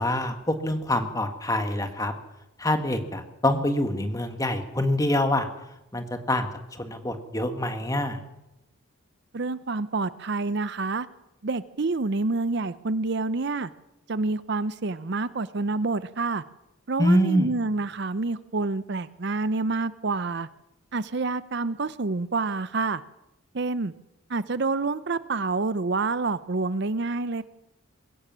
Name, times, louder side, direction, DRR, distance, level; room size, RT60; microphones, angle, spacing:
voice 1, 0.0-2.1 2.6-5.5 5.9-8.2 17.0-17.5, left 1 dB, 15° left, 7 dB, 1.7 m, -25 dB
voice 2, 9.3-11.1 11.4-13.7 14.1-16.4 16.9-20.5 20.9-23.0 23.5-23.9 24.3-27.4, right 3 dB, 50° right, 15 dB, 0.6 m, -28 dB
21.5 x 16.5 x 7.5 m, 0.89 s
head